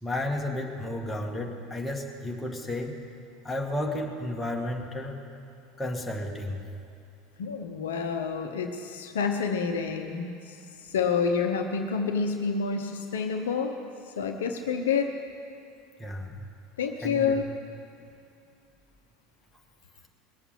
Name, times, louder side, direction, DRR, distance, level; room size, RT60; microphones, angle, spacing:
voice 1, 0.0-3.0 3.4-5.2 5.8-6.6 16.0-16.4 17.0-17.5, left 1 dB, 10° left, 0 dB, 2.0 m, -32 dB
voice 2, 7.4-10.6 10.8-13.7 14.2-15.1 16.8-17.4, left 5 dB, 70° left, 5 dB, 0.9 m, -28 dB
20.0 x 8.1 x 7.6 m, 2.5 s
figure-of-eight pair, 75°, 0 cm